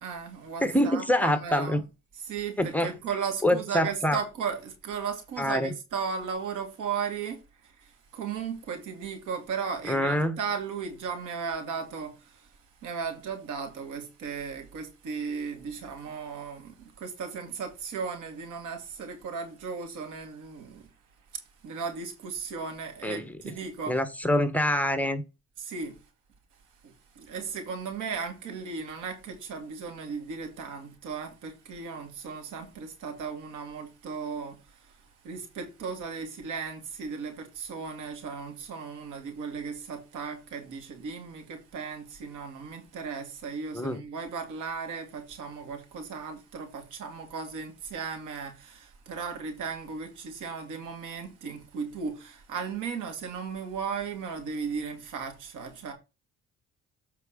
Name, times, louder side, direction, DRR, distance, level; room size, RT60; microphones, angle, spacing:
voice 1, 0.0-1.8 2.3-7.4 8.1-12.1 12.8-20.8 21.6-24.0 25.6-25.9 26.8-34.6 35.2-55.9, right 5 dB, 90° right, 2.9 m, -36 dB
voice 2, 0.6-1.8 2.6-2.9 3.4-4.2 5.4-5.7 9.9-10.4 23.0-23.4 23.9-25.2 43.7-44.0, left 1 dB, 5° left, 1.2 m, -25 dB
8.1 x 4.7 x 5.1 m
cardioid pair, 90°, 30 cm